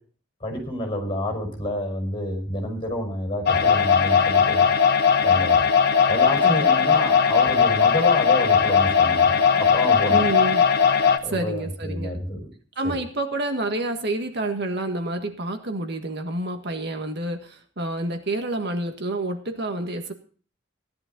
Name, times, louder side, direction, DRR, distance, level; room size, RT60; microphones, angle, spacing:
voice 1, 0.4-4.7 5.2-5.7 6.1-10.2 11.2-12.5 12.8-13.0, left 1 dB, 25° left, 3 dB, 5.5 m, -29 dB
sound 1, 3.5-11.2, left 6 dB, 55° left, 1.2 m, -18 dB
voice 2, 10.1-10.6 11.2-12.2 12.8-20.1, right 2 dB, 60° right, 5 dB, 1.7 m, -28 dB
16.5 x 11.5 x 3.9 m, 0.42 s
head